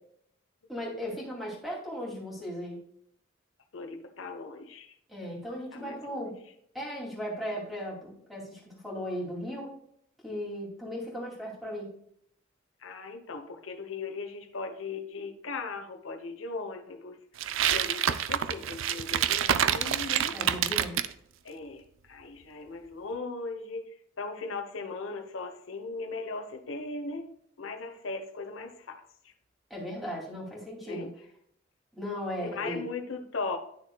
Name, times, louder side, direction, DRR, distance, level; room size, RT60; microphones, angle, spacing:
voice 1, 0.7-2.8 5.1-6.4 6.7-9.7 10.2-11.9 20.3-21.0 29.7-31.1 32.0-32.8, equal, ahead, -4 dB, 2.5 m, -37 dB
voice 2, 3.7-4.9 5.7-6.3 12.8-20.4 21.4-27.3 27.6-29.0 30.9-31.1 32.4-33.6, left 3 dB, 85° left, 5 dB, 0.9 m, -38 dB
sound 1, 17.4-21.1, right 10 dB, 80° right, 0.4 m, -27 dB
10.5 x 6.4 x 2.3 m, 0.68 s
head